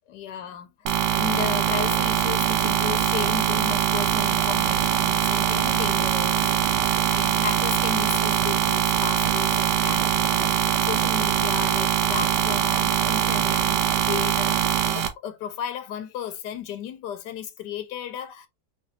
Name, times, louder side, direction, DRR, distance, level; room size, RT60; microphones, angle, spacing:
voice 1, 0.1-18.5, left 10 dB, 90° left, 1.3 m, -34 dB
sound 1, 0.9-15.1, right 10 dB, 90° right, 1.3 m, -22 dB
4.0 x 3.3 x 2.6 m
omnidirectional pair, 1.8 m